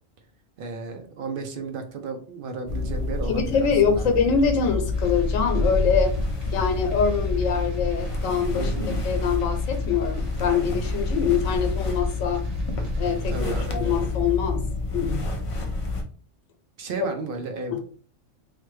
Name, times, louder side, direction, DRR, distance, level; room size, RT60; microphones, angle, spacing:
voice 1, 0.6-4.0 8.5-8.9 13.3-14.0 16.8-17.8, right 4 dB, 60° right, 5 dB, 0.6 m, -33 dB
sound 1, 2.7-16.0, left 3 dB, 60° left, 0.3 m, -28 dB
voice 2, 3.3-6.1 6.5-8.7 9.0-12.4 13.0-15.3 17.7-17.8, left 6 dB, 90° left, 5 dB, 1.0 m, -24 dB
sound 2, 4.9-13.7, left 1 dB, 35° right, 0.9 m, -32 dB
3.2 x 2.2 x 3.1 m, 0.43 s
omnidirectional pair, 1.3 m